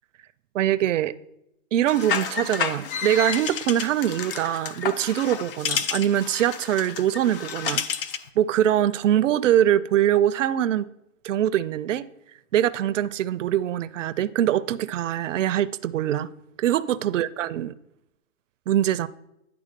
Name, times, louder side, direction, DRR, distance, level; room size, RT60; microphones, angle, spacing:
voice 1, 0.5-1.1 1.7-7.8 8.4-10.9 11.2-12.1 12.5-16.3 16.6-17.7 18.7-19.1, right 11 dB, 65° right, 0.5 m, -23 dB
sound 1, 1.9-8.3, left 7 dB, 45° left, 0.6 m, -30 dB
10.0 x 3.5 x 5.1 m
hypercardioid pair, 140°, 40 cm